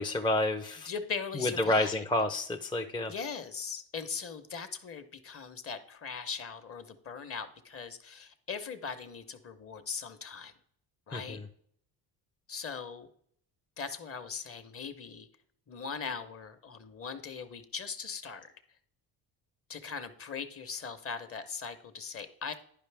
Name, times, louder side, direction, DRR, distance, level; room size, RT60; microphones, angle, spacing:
voice 1, 0.0-0.9 1.4-3.1 11.1-11.4, left 1 dB, 10° left, 3 dB, 0.4 m, -29 dB
voice 2, 0.8-2.0 3.1-10.5 11.1-11.4 12.5-13.1 13.8-15.3 15.7-18.5 19.7-22.5, left 6 dB, 35° left, 9 dB, 0.8 m, -40 dB
10.5 x 5.3 x 3.4 m, 0.66 s
cardioid pair, 115°, 40 cm